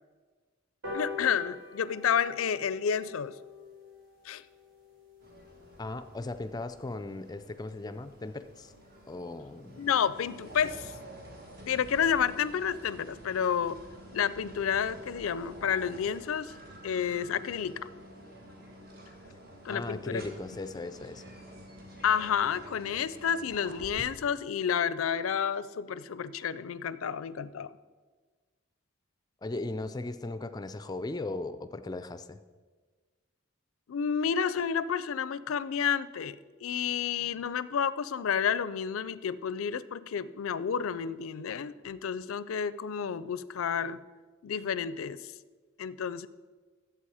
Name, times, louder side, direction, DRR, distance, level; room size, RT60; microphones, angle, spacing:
sound 1, 0.8-7.6 8.0-8.1 8.4-8.5 8.8-8.9 9.2-9.3 9.6-9.9 10.3-10.4, left 3 dB, 70° right, 3.5 m, -45 dB
voice 1, 0.9-3.3 4.2-4.4 9.8-10.9 11.6-13.8 14.1-16.5 16.8-17.8 19.6-20.2 22.0-27.7 33.9-44.0 44.4-45.3 45.8-46.3, left 7 dB, 90° left, 16 dB, 0.4 m, -30 dB
sound 2, 5.2-24.0, right 1 dB, 50° right, 1.6 m, -49 dB
voice 2, 5.8-8.7 9.1-9.9 19.7-21.2 29.4-32.4, left 2 dB, 20° left, 11 dB, 0.4 m, -37 dB
11.0 x 7.8 x 4.9 m, 1.4 s
head